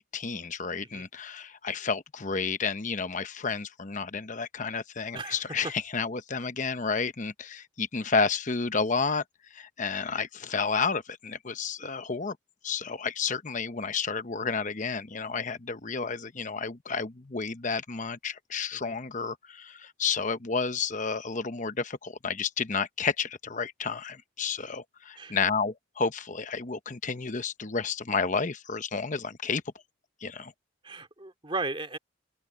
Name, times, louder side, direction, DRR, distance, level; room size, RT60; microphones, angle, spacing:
voice 1, 0.0-9.2 9.5-12.4 12.6-29.6 30.2-30.5, left 5 dB, 40° left, 0.9 m, -31 dB
voice 2, 30.8-32.0, right 3 dB, 25° right, 2.5 m, -36 dB
open air
head